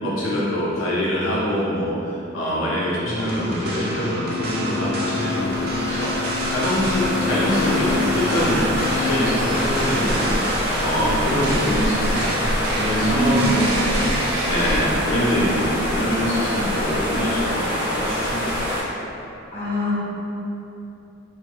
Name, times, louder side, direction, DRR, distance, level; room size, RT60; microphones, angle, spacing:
voice 1, 0.0-10.4 10.8-12.3 12.7-14.1 14.5-18.6, equal, 80° left, -7 dB, 0.5 m, -24 dB
sound 1, 3.0-11.5, left 5 dB, 30° right, 1.3 m, -29 dB
sound 2, 3.2-14.8, right 1 dB, 55° right, 0.4 m, -29 dB
sound 3, 4.6-18.8, equal, 10° right, 1.1 m, -25 dB
voice 2, 12.9-13.7 19.5-20.0, equal, 30° left, -11 dB, 1.1 m, -23 dB
3.0 x 2.5 x 2.9 m, 3.0 s
head